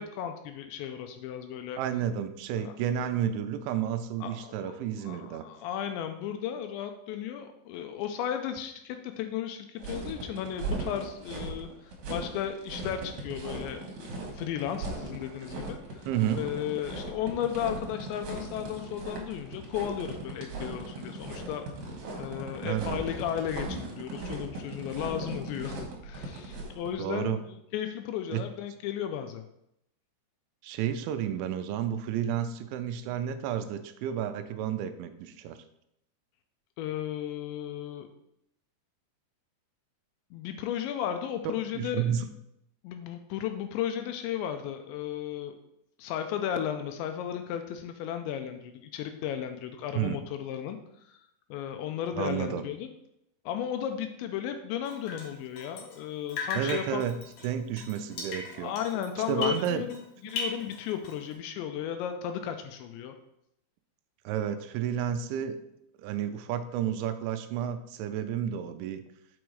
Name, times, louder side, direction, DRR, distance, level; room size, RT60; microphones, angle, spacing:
voice 1, 0.0-1.8 2.6-2.7 4.2-4.8 5.0-13.8 14.3-16.1 16.4-21.6 22.2-25.8 26.0-29.4 36.8-38.1 40.3-42.1 42.8-45.6 46.0-51.2 51.5-52.9 53.5-57.0 58.5-63.2, left 9 dB, 80° left, 6 dB, 2.7 m, -34 dB
voice 2, 1.8-5.5 16.1-16.5 22.6-23.0 27.0-27.4 28.3-28.5 30.6-35.6 41.7-42.3 49.9-50.2 52.2-52.7 56.6-57.2 57.4-58.7 59.3-59.8 64.3-65.6 66.0-69.0, right 9 dB, 85° right, 9 dB, 3.0 m, -31 dB
sound 1, 9.8-26.9, right 2 dB, 60° right, 2.6 m, -38 dB
Drip, 54.8-56.0 56.3-60.0 60.3-61.3, left 4 dB, 60° left, 2.2 m, -37 dB
6.3 x 6.1 x 4.7 m, 0.79 s
omnidirectional pair, 5.4 m